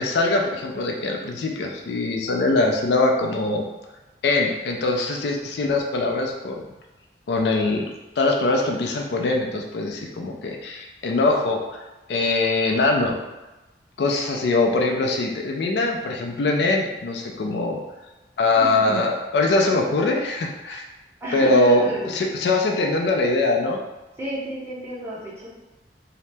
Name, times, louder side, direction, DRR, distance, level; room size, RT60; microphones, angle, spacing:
voice 1, 0.0-3.6 4.2-6.6 7.3-7.9 8.2-11.8 12.1-13.2 14.0-17.8 18.4-20.8 21.3-21.9 22.1-23.8, left 2 dB, 65° left, 1 dB, 0.4 m, -22 dB
voice 2, 18.6-19.0 21.2-22.3 24.2-25.5, right 1 dB, 15° right, -7 dB, 0.7 m, -31 dB
2.7 x 2.0 x 3.3 m, 1.1 s
head